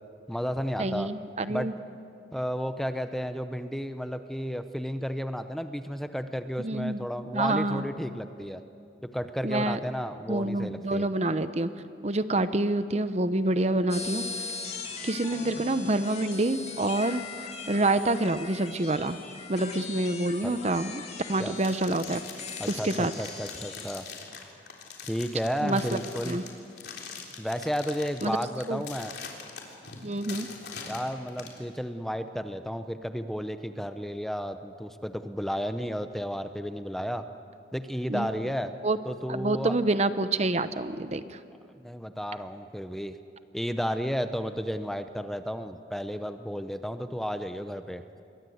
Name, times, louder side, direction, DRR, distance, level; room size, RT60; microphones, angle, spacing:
voice 1, 0.3-1.1 1.5-1.7 2.3-8.6 9.0-11.1 20.4-20.5 21.4-21.5 22.6-24.0 25.1-26.4 27.4-29.1 30.9-37.2 37.7-38.7 39.1-39.8 41.8-43.2 43.5-48.0, equal, ahead, 9 dB, 0.7 m, -32 dB
voice 2, 0.8-1.7 6.6-7.0 7.3-7.8 9.4-9.8 10.3-11.7 12.0-14.3 15.0-17.2 17.7-19.2 19.5-21.0 21.3-22.2 22.7-23.1 25.6-26.0 26.3-26.4 28.2-28.4 28.7-28.8 30.0-30.5 38.1-38.3 38.8-39.0 39.3-41.4, right 2 dB, 35° right, 12 dB, 0.8 m, -27 dB
sound 1, 13.9-24.0, left 4 dB, 35° left, 2.6 m, -40 dB
sound 2, 21.6-31.6, left 6 dB, 65° left, 3.7 m, -43 dB
27.5 x 22.5 x 7.9 m, 2.5 s
head